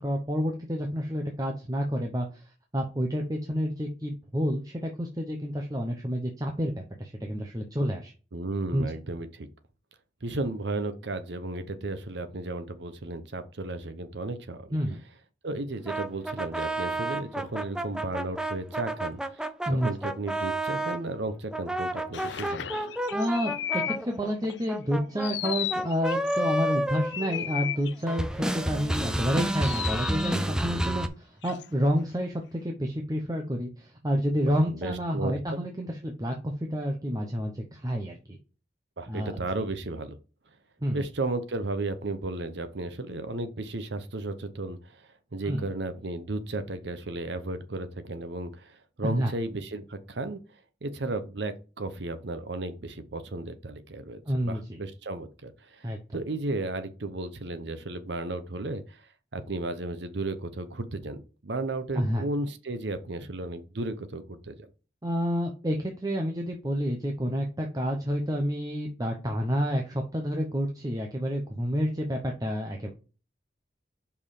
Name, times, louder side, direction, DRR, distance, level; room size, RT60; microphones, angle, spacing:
voice 1, 0.0-2.4 2.7-8.1 8.7-8.9 14.7-15.0 19.7-19.9 23.1-38.4 39.1-39.4 40.8-41.0 45.4-45.7 49.0-49.3 54.3-54.8 55.8-56.2 61.9-62.2 65.0-72.9, equal, 20° right, 0.8 m, -29 dB
voice 2, 8.3-9.5 10.2-14.8 15.4-19.4 19.7-22.9 34.8-35.6 39.0-40.2 40.9-50.4 50.8-59.0 59.3-64.7, right 2 dB, 70° right, 0.9 m, -34 dB
sound 1, 15.9-21.0 21.5-27.8 28.1-31.1, right 1 dB, 5° right, 0.4 m, -31 dB
sound 2, 22.1-24.0 24.5-24.7 25.2-26.4 27.1-28.0 29.4-30.4 31.4-31.9, left 11 dB, 75° left, 0.5 m, -34 dB
5.5 x 4.5 x 4.9 m
head